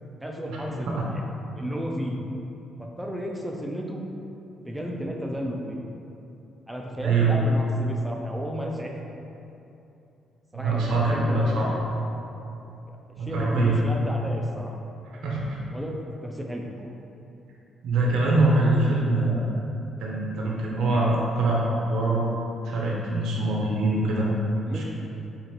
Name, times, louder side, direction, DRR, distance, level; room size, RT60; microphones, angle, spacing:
voice 1, 0.2-1.2 1.6-2.2 2.8-4.0 4.6-5.8 6.7-8.9 10.5-11.7 12.9-14.7 15.7-16.7 24.7-24.8, equal, 5° right, 0 dB, 0.5 m, -33 dB
voice 2, 7.0-7.3 10.5-11.7 13.2-13.7 15.2-15.6 17.8-19.5 20.0-22.3 22.6-24.3 24.7-24.8, right 2 dB, 80° right, -4 dB, 0.7 m, -23 dB
5.0 x 2.5 x 2.9 m, 2.8 s
cardioid pair, 90°, 0 cm